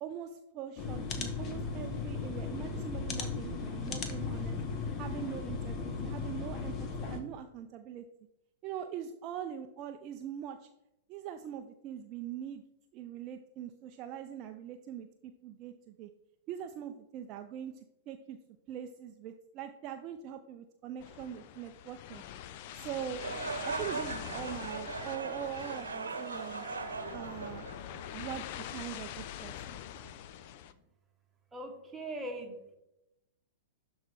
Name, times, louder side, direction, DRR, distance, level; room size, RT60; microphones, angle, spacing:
voice 1, 0.0-4.6 5.0-8.0 8.6-10.7 11.1-12.6 12.9-16.1 16.5-18.4 18.7-22.2 22.7-23.2 23.6-26.6 27.1-27.7 28.1-29.8, right 9 dB, 35° right, 6 dB, 0.5 m, -42 dB
sound 1, 0.8-7.2, left 4 dB, 30° left, 1.2 m, -36 dB
sound 2, 21.0-30.7, left 11 dB, 45° left, 0.5 m, -44 dB
sound 3, 23.1-28.3, right 4 dB, 75° right, 1.0 m, -39 dB
voice 2, 31.5-32.8, right 1 dB, 10° right, 1 dB, 1.5 m, -41 dB
12.0 x 4.3 x 3.6 m, 0.89 s
figure-of-eight pair, 100°, 0 cm